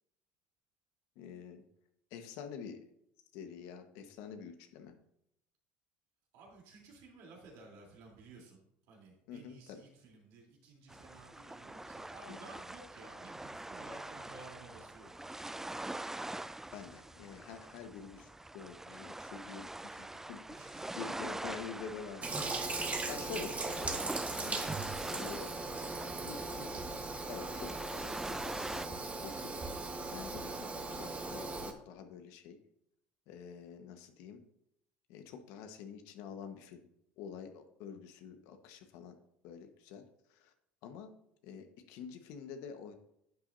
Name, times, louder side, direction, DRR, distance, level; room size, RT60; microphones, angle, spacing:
voice 1, 1.1-1.6 2.1-2.8 3.3-4.9 9.3-9.8 12.3-12.4 16.7-18.3 18.5-20.4 20.9-22.6 23.1-24.0 24.4-24.6 25.1-25.6 26.3-26.8 27.3-29.5 30.1-32.6 33.3-34.4 35.1-36.9 37.2-39.1 39.4-40.0 40.3-40.5 40.8-41.1 41.4-42.9, left 6 dB, 75° left, 6 dB, 1.3 m, -47 dB
voice 2, 6.3-15.5 20.5-21.3, right 3 dB, 75° right, 0 dB, 3.5 m, -55 dB
sound 1, 10.9-28.9, right 2 dB, 5° right, 0.3 m, -44 dB
Toilet flush, 22.2-31.7, right 3 dB, 25° right, 1.4 m, -38 dB
11.0 x 8.5 x 2.7 m, 0.76 s
supercardioid pair, 85°, 6 cm